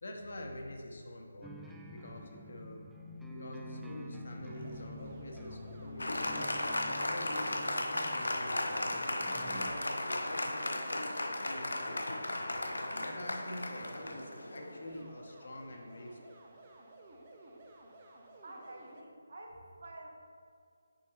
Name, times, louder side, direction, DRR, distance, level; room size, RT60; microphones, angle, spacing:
voice 1, 0.0-2.8 3.3-6.6 7.0-12.1 12.8-16.3, left 1 dB, 60° left, 2 dB, 0.9 m, -46 dB
sound 1, 1.4-9.7, left 1 dB, 5° right, 0.3 m, -48 dB
sound 2, 4.4-19.0, right 2 dB, 35° right, 0.7 m, -55 dB
Applause, 6.0-15.0, left 1 dB, 80° left, 0.5 m, -35 dB
voice 2, 18.4-20.1, right 1 dB, 60° right, 0 dB, 1.2 m, -49 dB
6.5 x 5.6 x 3.0 m, 2.2 s
figure-of-eight pair, 155°, 0 cm